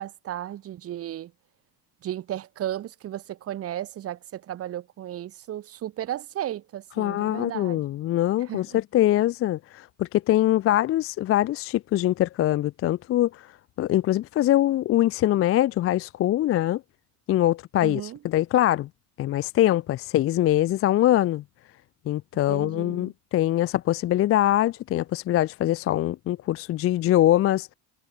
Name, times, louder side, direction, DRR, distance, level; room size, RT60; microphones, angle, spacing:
voice 1, 0.0-1.3 2.0-7.8 8.5-8.6 17.8-18.2 22.5-23.1, right 12 dB, 30° right, 0.7 m, -34 dB
voice 2, 7.0-13.5 13.8-16.8 17.3-18.9 19.2-21.4 22.1-27.7, left 13 dB, 35° left, 0.4 m, -23 dB
cardioid pair, 130°, 45 cm